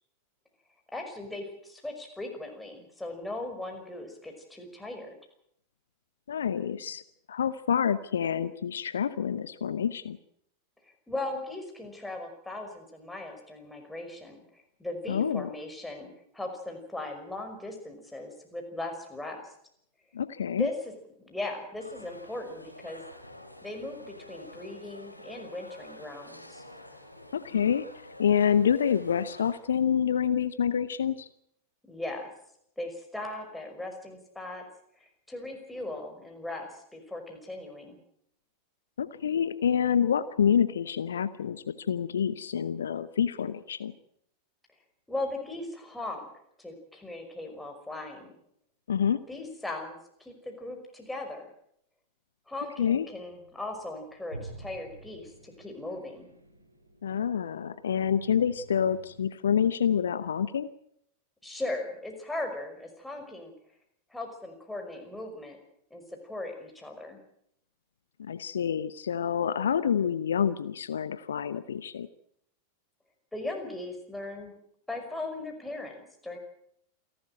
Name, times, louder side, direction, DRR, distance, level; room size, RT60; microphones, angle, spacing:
voice 1, 0.9-5.2 11.1-14.4 14.8-19.4 20.6-20.7 21.3-23.0 23.6-26.6 31.9-32.3 32.8-34.6 35.0-38.0 45.1-46.3 46.6-48.3 49.3-51.5 52.5-56.3 61.4-63.5 64.1-65.6 65.9-67.2 73.3-74.5 74.9-75.9 76.2-76.4, left 2 dB, 5° left, 3 dB, 5.6 m, -38 dB
voice 2, 6.3-7.0 7.3-10.2 15.1-15.5 20.1-20.7 27.3-27.8 28.2-31.3 39.0-43.9 48.9-49.2 52.8-53.1 57.0-60.7 68.2-72.1, left 8 dB, 65° left, 15 dB, 0.9 m, -27 dB
sound 1, 21.8-29.6, left 1 dB, 85° left, 3.0 m, -48 dB
sound 2, 52.9-59.2, right 2 dB, 80° right, 3.7 m, -49 dB
28.0 x 12.5 x 8.9 m, 0.73 s
figure-of-eight pair, 90°, 0 cm